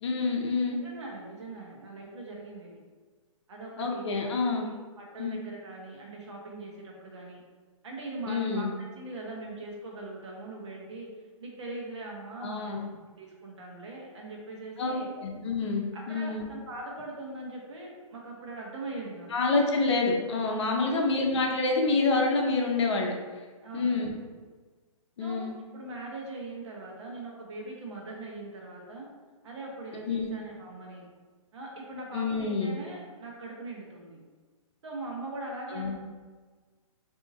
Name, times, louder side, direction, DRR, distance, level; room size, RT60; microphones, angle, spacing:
voice 1, 0.0-0.8 3.8-4.7 5.2-5.4 8.3-8.7 12.4-12.8 14.8-16.5 19.3-23.2 23.7-24.1 25.2-25.5 30.1-30.3 32.1-32.8 35.7-36.0, left 3 dB, 55° left, 1 dB, 0.7 m, -27 dB
voice 2, 0.7-2.8 3.5-4.7 5.0-7.4 7.8-11.1 11.4-12.8 13.2-15.1 15.9-19.3 20.7-21.1 23.6-24.2 25.2-25.4 25.7-29.1 29.4-31.1 31.5-34.2 34.8-36.0, right 2 dB, 55° right, -2 dB, 1.0 m, -41 dB
3.7 x 2.8 x 2.7 m, 1.4 s
hypercardioid pair, 160°, 18 cm